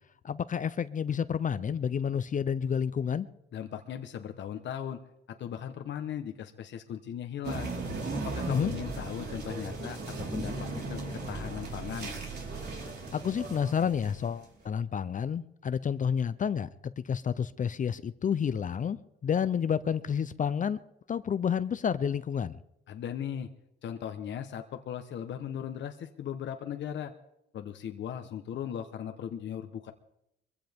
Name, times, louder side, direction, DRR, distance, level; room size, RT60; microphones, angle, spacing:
voice 1, 0.2-3.3 8.5-8.7 13.1-20.8 21.1-22.6, left 7 dB, 40° left, 0.6 m, -30 dB
voice 2, 3.5-5.0 5.3-7.7 8.2-12.1 22.9-23.5 23.8-27.1 27.5-29.9, left 9 dB, 65° left, 1.1 m, -38 dB
sound 1, 7.4-14.5, right 3 dB, 55° right, 4.3 m, -37 dB
22.5 x 15.5 x 3.6 m
cardioid pair, 90°, 20 cm